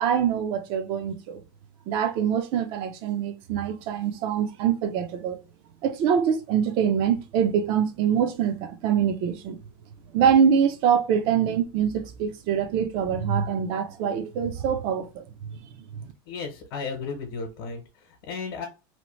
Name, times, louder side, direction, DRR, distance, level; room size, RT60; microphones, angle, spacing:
voice 1, 0.0-1.4 1.9-5.4 5.8-9.6 10.1-15.6, right 8 dB, 45° right, 0.6 m, -24 dB
voice 2, 16.3-18.7, left 5 dB, 60° left, 0.9 m, -34 dB
2.9 x 2.1 x 3.0 m
supercardioid pair, 150°, 12 cm